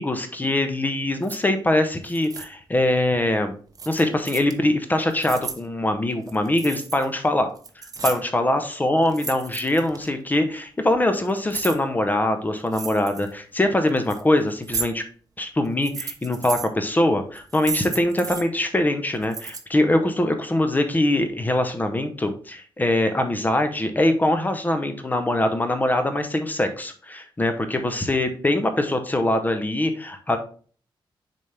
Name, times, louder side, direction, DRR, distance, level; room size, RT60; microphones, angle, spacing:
voice 1, 0.0-3.5 3.9-7.5 7.8-15.0 15.4-30.4, left 1 dB, 20° left, 7 dB, 0.8 m, -23 dB
sound 1, 1.2-1.4 2.1-2.5 3.8-4.5 5.0-5.6 6.2-7.1 7.4-8.4 9.0-10.1 10.9-11.8 12.7-13.3 13.9-14.2 14.6-14.9 15.7-16.7 17.4-18.4 19.2-19.6, right 5 dB, 40° right, 0.8 m, -33 dB
6.7 x 4.2 x 3.4 m, 0.42 s
wide cardioid pair, 125°, 9 cm